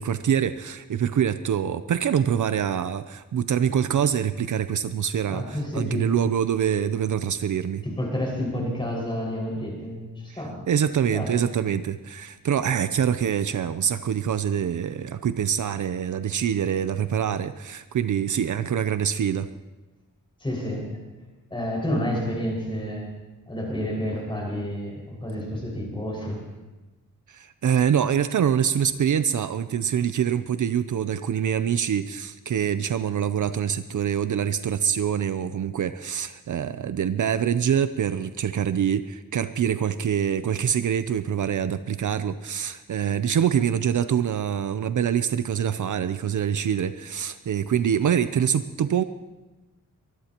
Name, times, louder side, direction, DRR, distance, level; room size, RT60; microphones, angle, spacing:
voice 1, 0.0-7.8 10.7-19.5 27.3-49.0, right 8 dB, 65° right, 12 dB, 0.6 m, -25 dB
voice 2, 5.3-6.1 7.8-10.6 11.1-11.5 20.4-21.0 21.5-23.1 23.5-26.4, equal, 15° left, -2 dB, 5.5 m, -30 dB
23.5 x 20.0 x 3.0 m, 1.1 s
wide cardioid pair, 170°, 33 cm